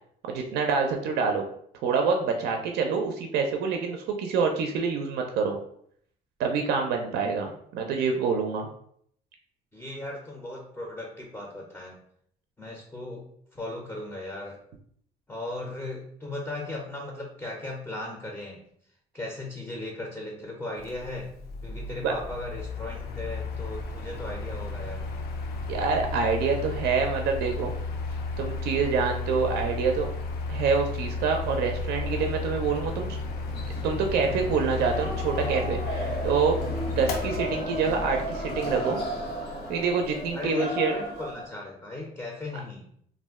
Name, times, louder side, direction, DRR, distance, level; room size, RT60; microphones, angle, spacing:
voice 1, 0.2-1.4 1.8-5.6 6.4-8.7 22.0-22.1 25.7-27.7 28.4-30.1 30.5-33.2 33.8-36.6 36.9-39.0 39.7-40.9, right 5 dB, 75° right, 3 dB, 0.4 m, -26 dB
voice 2, 9.7-12.0 12.6-13.3 13.5-14.6 15.3-18.6 19.1-21.3 21.6-25.1 40.3-42.9, left 2 dB, 10° left, 0 dB, 0.5 m, -37 dB
Mechanical fan, 20.8-40.4, left 3 dB, 70° left, 0.5 m, -34 dB
sound 1, 31.9-41.5, equal, 85° left, 1.1 m, -35 dB
2.4 x 2.1 x 3.4 m, 0.66 s
cardioid pair, 110°, 17 cm